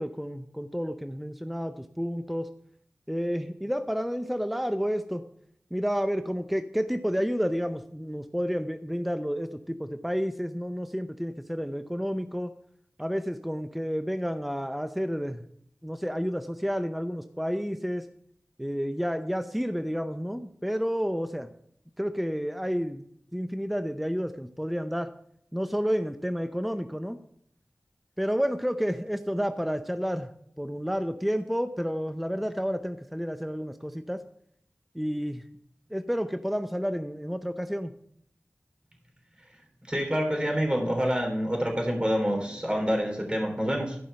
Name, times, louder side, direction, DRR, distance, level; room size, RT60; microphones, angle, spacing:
voice 1, 0.0-2.5 3.1-5.2 5.7-12.5 13.0-15.4 15.8-18.1 18.6-21.5 22.0-23.0 23.3-25.1 25.5-27.2 28.2-30.3 30.6-34.2 34.9-35.4 35.9-37.9, equal, ahead, 9 dB, 0.6 m, -30 dB
voice 2, 39.9-44.0, equal, 20° right, 1 dB, 3.4 m, -27 dB
13.5 x 5.5 x 5.6 m, 0.69 s
wide cardioid pair, 45°, 5 cm